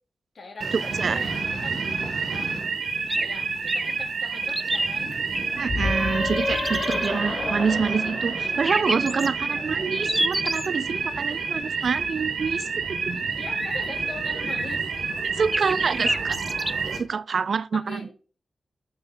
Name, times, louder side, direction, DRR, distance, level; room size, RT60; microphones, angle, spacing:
voice 1, 0.3-1.8 2.3-2.5 3.2-5.2 9.1-9.7 11.3-11.4 13.0-14.9 15.4-16.2 17.7-18.1, left 3 dB, 70° left, 3.3 m, -42 dB
sound 1, 0.6-17.0, right 4 dB, 80° right, 1.5 m, -29 dB
sound 2, 3.1-3.3 3.7-3.9 4.5-5.4 6.4-7.1 8.6-9.3 10.0-10.7 13.5-13.9 14.4-15.0 15.5-16.7, right 1 dB, 10° right, 0.5 m, -28 dB
voice 2, 5.5-13.3 15.4-16.4 16.9-18.0, right 5 dB, 65° right, 0.4 m, -27 dB
sound 3, 5.6-9.2, left 3 dB, 45° left, 0.9 m, -30 dB
7.7 x 6.3 x 4.7 m
wide cardioid pair, 95°, 0 cm